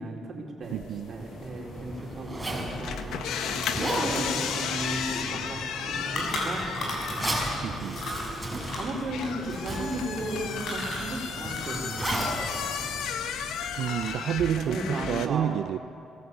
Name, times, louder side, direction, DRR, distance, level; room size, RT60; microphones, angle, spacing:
voice 1, 0.0-0.8 1.1-3.6 4.1-7.7 8.8-12.1 14.6-15.5, right 1 dB, 40° right, 4.3 m, -35 dB
sound 1, 0.6-15.3, left 7 dB, 80° left, 1.5 m, -35 dB
voice 2, 0.7-1.1 7.6-8.1 13.8-15.8, right 10 dB, 70° right, 0.6 m, -29 dB
Zipper (clothing), 1.1-13.7, right 1 dB, 5° right, 6.0 m, -35 dB
sound 2, 3.2-7.6 7.9-11.9 12.2-13.3 13.7-14.3, left 1 dB, 55° left, 6.9 m, -36 dB
22.5 x 18.0 x 8.4 m
cardioid pair, 130°, 0 cm